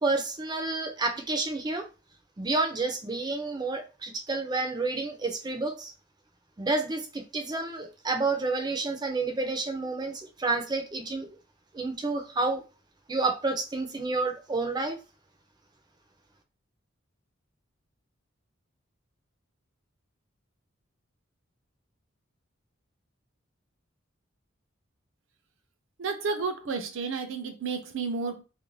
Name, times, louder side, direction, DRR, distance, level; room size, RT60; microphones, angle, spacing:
voice 1, 0.0-1.8 2.4-5.9 6.6-11.3 11.7-12.6 13.1-15.0, right 3 dB, 20° right, 0.4 m, -29 dB
voice 2, 26.0-28.4, right 4 dB, 70° right, 0.6 m, -31 dB
2.5 x 2.2 x 3.1 m
head